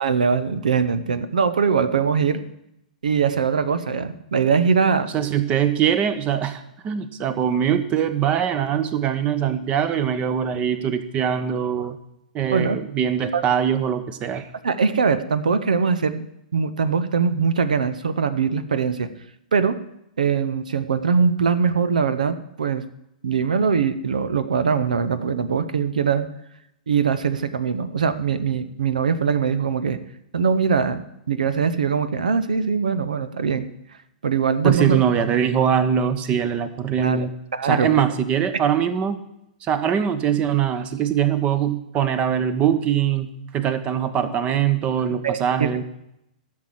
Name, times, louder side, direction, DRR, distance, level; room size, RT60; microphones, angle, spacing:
voice 1, 0.0-2.4 3.0-5.1 12.5-12.8 13.3-13.4 14.6-16.3 16.5-19.1 19.5-19.7 20.2-22.8 23.2-26.3 26.9-30.0 30.3-31.0 31.3-33.7 34.2-35.0 37.0-37.2 37.5-37.9 45.2-45.7, right 6 dB, 75° right, 13 dB, 0.9 m, -21 dB
voice 2, 5.1-12.0 12.3-14.5 34.6-37.3 37.6-39.2 39.6-43.3 43.5-45.8, right 8 dB, 30° right, 12 dB, 1.1 m, -22 dB
12.5 x 6.6 x 7.4 m, 0.80 s
figure-of-eight pair, 110°, 4 cm